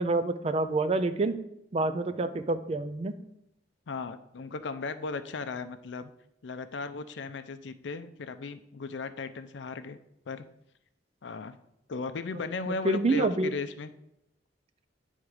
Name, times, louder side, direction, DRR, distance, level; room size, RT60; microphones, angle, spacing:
voice 1, 0.0-1.3 1.7-3.1 12.8-13.5, right 2 dB, 35° right, 11 dB, 0.4 m, -27 dB
voice 2, 3.9-6.1 6.4-10.0 10.3-10.4 11.2-11.6 11.9-13.9, left 3 dB, 80° left, 11 dB, 0.5 m, -36 dB
9.3 x 3.6 x 4.8 m, 0.83 s
head